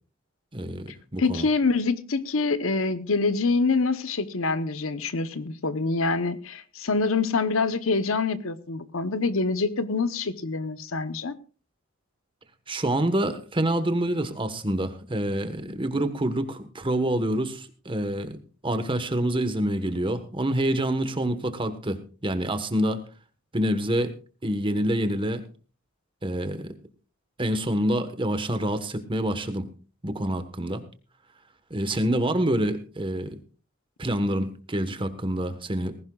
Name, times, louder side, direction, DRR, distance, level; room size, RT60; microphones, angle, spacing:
voice 1, 0.5-1.5 12.7-18.4 18.6-23.0 23.5-24.1 24.4-25.5 26.2-26.7 27.4-29.7 30.0-30.8 31.7-33.4 34.0-36.0, right 1 dB, 25° right, 9 dB, 1.3 m, -27 dB
voice 2, 1.2-11.4, left 4 dB, 75° left, 12 dB, 0.9 m, -25 dB
19.0 x 16.0 x 2.4 m, 0.35 s
head